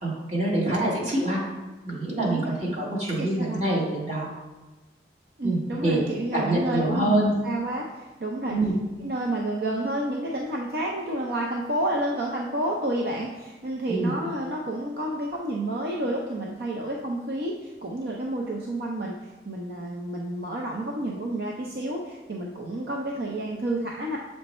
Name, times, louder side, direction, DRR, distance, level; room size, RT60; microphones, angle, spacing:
voice 1, 0.0-1.4 1.8-4.3 5.4-6.0 6.3-7.3 8.5-8.7 13.9-14.1, right 1 dB, 40° right, -5 dB, 1.5 m, -25 dB
voice 2, 2.2-2.6 3.2-3.6 5.4-8.6 9.0-19.2 19.5-24.2, right 1 dB, 65° right, -1 dB, 0.5 m, -30 dB
7.1 x 3.3 x 4.2 m, 1.2 s
head